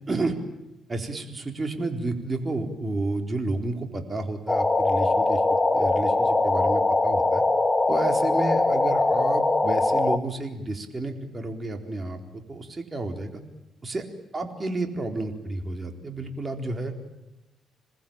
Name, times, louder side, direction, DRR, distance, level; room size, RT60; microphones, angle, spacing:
voice 1, 0.1-0.4 0.9-7.4 7.9-13.4 13.8-14.0 14.3-16.9, right 2 dB, 30° right, 4 dB, 4.1 m, -31 dB
sound 1, 4.5-10.2, left 2 dB, 15° left, 1.8 m, -22 dB
27.5 x 20.5 x 8.9 m, 0.96 s
cardioid pair, 90°, 0 cm